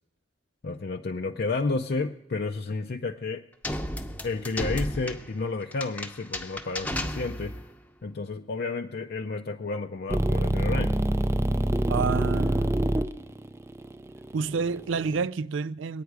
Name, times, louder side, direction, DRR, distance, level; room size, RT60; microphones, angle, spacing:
voice 1, 0.6-3.4 4.2-7.6 8.0-10.9, left 3 dB, 55° left, 0.5 m, -31 dB
sound 1, 3.6-7.7, left 1 dB, 10° left, 0.8 m, -34 dB
sound 2, 10.1-15.2, right 1 dB, 15° right, 0.4 m, -26 dB
voice 2, 11.9-12.9 14.3-16.0, right 5 dB, 85° right, 0.4 m, -29 dB
21.5 x 9.1 x 4.8 m
head